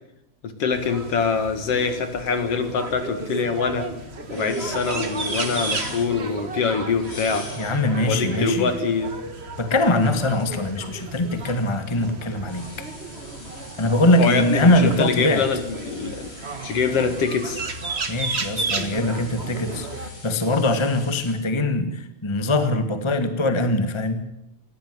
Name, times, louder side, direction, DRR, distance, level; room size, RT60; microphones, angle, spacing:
voice 1, 0.4-3.9 4.3-7.5 8.1-9.2 14.0-16.3 16.6-17.6, left 5 dB, 55° left, 9 dB, 2.7 m, -24 dB
sound 1, 0.7-20.1, right 4 dB, 30° right, 1.4 m, -33 dB
sound 2, 3.9-21.3, left 2 dB, 75° left, 7.3 m, -43 dB
voice 2, 7.6-8.7 9.6-12.7 13.8-15.4 18.1-24.2, left 1 dB, 15° left, 9 dB, 1.2 m, -22 dB
19.5 x 16.0 x 9.5 m, 0.84 s
omnidirectional pair, 3.3 m